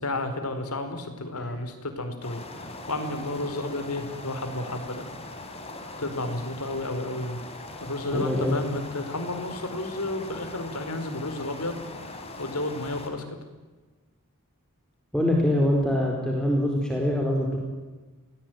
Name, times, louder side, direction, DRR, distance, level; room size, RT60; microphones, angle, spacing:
voice 1, 0.0-5.1 6.0-7.4 7.8-11.8 12.4-13.4, left 2 dB, 85° left, 8 dB, 4.8 m, -32 dB
sound 1, 2.2-13.1, left 2 dB, 25° left, 4.3 m, -41 dB
voice 2, 8.1-8.5 15.1-17.6, left 1 dB, 5° left, -1 dB, 4.5 m, -24 dB
28.5 x 20.5 x 9.4 m, 1.3 s
head